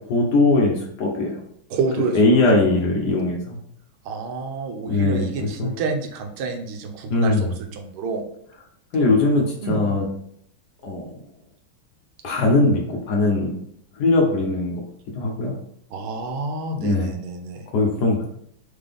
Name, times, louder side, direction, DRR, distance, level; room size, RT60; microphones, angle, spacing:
voice 1, 0.1-1.4 2.1-3.6 4.9-5.7 7.1-7.5 8.9-10.1 10.8-11.2 12.2-13.5 13.9-14.8 15.1-15.6 16.8-17.1 17.7-18.2, left 2 dB, 65° left, 0 dB, 1.1 m, -20 dB
voice 2, 1.7-2.2 2.4-2.6 4.0-8.2 9.6-10.0 15.9-17.7, right 3 dB, 90° right, 4 dB, 1.6 m, -28 dB
3.8 x 3.8 x 3.4 m, 0.70 s
omnidirectional pair, 2.3 m